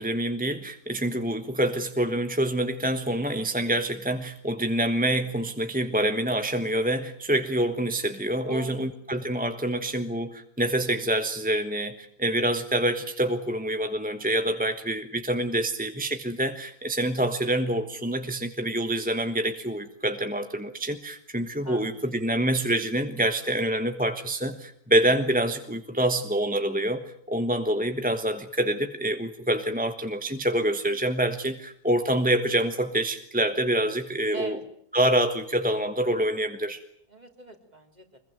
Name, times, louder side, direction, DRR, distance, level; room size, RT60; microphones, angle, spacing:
voice 1, 0.0-34.6 34.9-36.8, right 1 dB, 5° right, 7 dB, 1.1 m, -26 dB
voice 2, 8.5-8.9 21.6-22.4 34.3-34.6 37.1-38.2, right 3 dB, 25° right, 5 dB, 3.7 m, -41 dB
25.5 x 22.0 x 9.2 m, 0.67 s
omnidirectional pair, 1.7 m